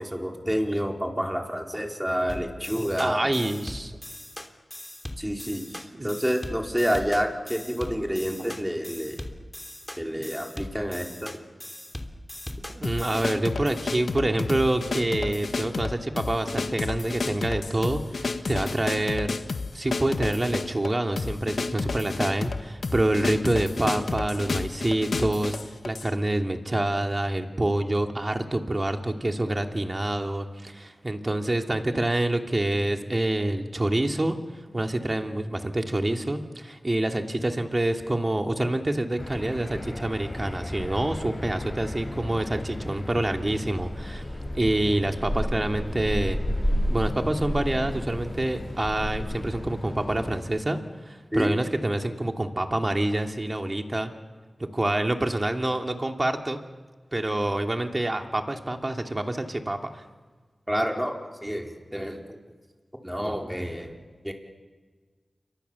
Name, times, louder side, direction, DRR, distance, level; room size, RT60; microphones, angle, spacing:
voice 1, 0.0-3.2 5.2-9.2 10.0-11.3 51.3-51.5 60.7-62.4 63.0-64.0 64.2-64.3, equal, 5° right, 1 dB, 4.6 m, -29 dB
sound 1, 2.3-13.3, left 1 dB, 15° left, 3.2 m, -40 dB
voice 2, 3.0-3.9 5.9-6.1 12.7-19.3 19.7-25.6 25.8-34.4 34.7-44.2 44.5-46.4 46.9-54.1 54.6-56.6 57.1-60.0, right 1 dB, 35° right, 4 dB, 2.8 m, -27 dB
sound 2, 12.8-26.1, left 3 dB, 75° left, 1.6 m, -31 dB
sound 3, 39.2-50.4, left 1 dB, 30° left, 7.8 m, -32 dB
29.5 x 23.5 x 7.2 m, 1.4 s
cardioid pair, 45°, 0 cm